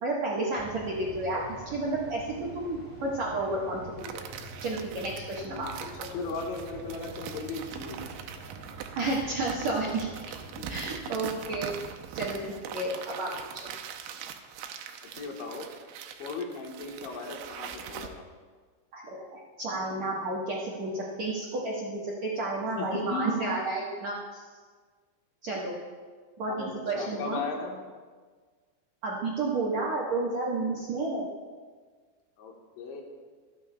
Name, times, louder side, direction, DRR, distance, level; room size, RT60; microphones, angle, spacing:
voice 1, 0.0-4.1 4.6-5.7 8.9-10.1 10.7-11.7 12.1-13.3 18.9-24.4 25.4-25.7 26.4-27.4 29.0-31.3, right 2 dB, 70° right, -5 dB, 1.7 m, -31 dB
sound 1, 0.6-10.5, right 1 dB, 5° right, 1.8 m, -46 dB
sound 2, 4.0-18.1, right 8 dB, 85° right, 3.0 m, -42 dB
voice 2, 6.1-8.1 10.5-11.3 15.2-15.7 16.2-18.2 22.8-23.6 26.5-27.8 32.4-33.0, left 3 dB, 80° left, 1 dB, 3.6 m, -37 dB
26.5 x 9.3 x 2.3 m, 1.5 s
omnidirectional pair, 5.2 m